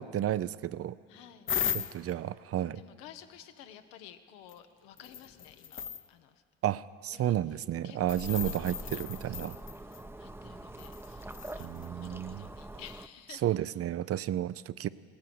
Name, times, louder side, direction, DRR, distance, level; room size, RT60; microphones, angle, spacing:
voice 1, 0.0-0.9 1.9-2.8 6.6-9.6 11.6-12.4 13.4-14.9, right 12 dB, 50° right, 17 dB, 0.5 m, -32 dB
voice 2, 1.1-2.1 2.5-6.4 7.1-13.5, left 9 dB, 85° left, 8 dB, 0.9 m, -53 dB
sound 1, 1.5-2.1 4.5-4.6 5.0-6.1 8.1-10.0 10.8-11.9 12.9-13.0, left 8 dB, 40° left, 0.7 m, -37 dB
sound 2, 8.0-13.1, right 1 dB, 5° right, 0.7 m, -44 dB
17.0 x 10.5 x 7.8 m, 2.5 s
hypercardioid pair, 55°, 31 cm